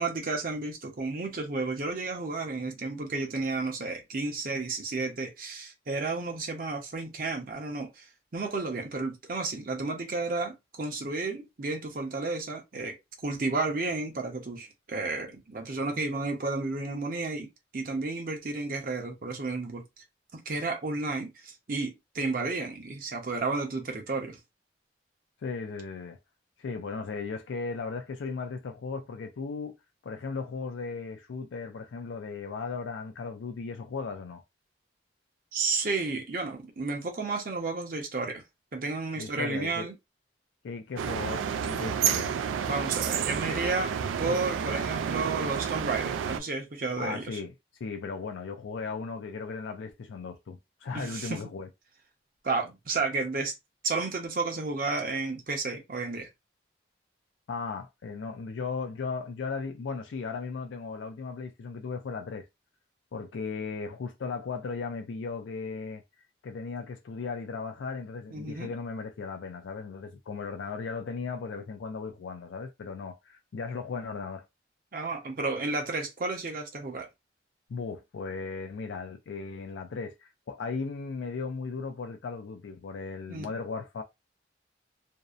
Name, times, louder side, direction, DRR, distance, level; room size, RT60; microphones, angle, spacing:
voice 1, 0.0-8.1 8.3-13.0 13.2-17.5 17.7-19.8 20.3-24.4 35.5-38.4 38.7-39.9 42.6-43.9 44.2-47.4 50.9-51.4 52.4-53.5 53.8-56.3 68.3-68.7 74.9-77.1 83.3-83.5, right 3 dB, 45° right, 0.6 m, -32 dB
voice 2, 25.4-26.2 26.6-29.7 30.0-34.4 39.2-39.9 40.6-42.4 47.0-47.5 47.8-51.7 57.5-62.5 63.1-66.0 66.4-74.4 77.7-84.0, left 4 dB, 80° left, 0.4 m, -36 dB
sound 1, 41.0-46.4, right 7 dB, 90° right, 0.3 m, -30 dB
2.6 x 2.0 x 2.3 m
head